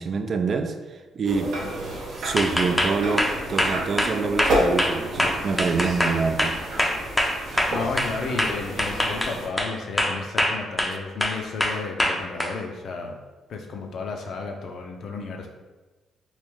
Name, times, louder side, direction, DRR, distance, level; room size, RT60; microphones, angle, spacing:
voice 1, 0.0-1.7 2.2-6.6 10.9-11.0, right 4 dB, 50° right, 7 dB, 0.3 m, -26 dB
sound 1, 1.2-9.5, right 1 dB, 75° right, 0.9 m, -30 dB
sound 2, 2.4-8.1 8.4-9.7 10.0-10.9 11.2-12.5, left 1 dB, 10° left, 0.5 m, -23 dB
voice 2, 7.7-13.2 13.5-15.5, left 4 dB, 60° left, 3 dB, 0.5 m, -32 dB
3.1 x 2.5 x 3.5 m, 1.2 s
cardioid pair, 90°, 0 cm